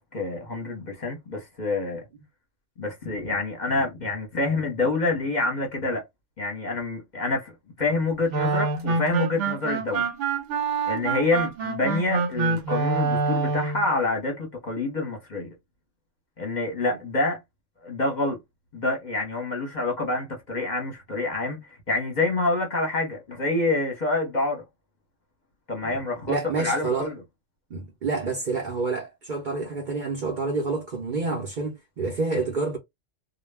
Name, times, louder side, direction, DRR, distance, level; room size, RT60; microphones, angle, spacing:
voice 1, 0.0-2.0 2.8-6.0 6.4-7.5 7.8-10.1 10.9-15.5 16.4-17.4 17.8-18.4 18.7-24.6 25.7-27.2, left 2 dB, 40° left, 0.8 m, -27 dB
sound 1, 8.3-13.8, right 4 dB, 70° right, 1.0 m, -26 dB
voice 2, 26.3-27.1 27.7-32.8, right 3 dB, 50° right, 0.6 m, -28 dB
2.2 x 2.1 x 3.3 m
omnidirectional pair, 1.3 m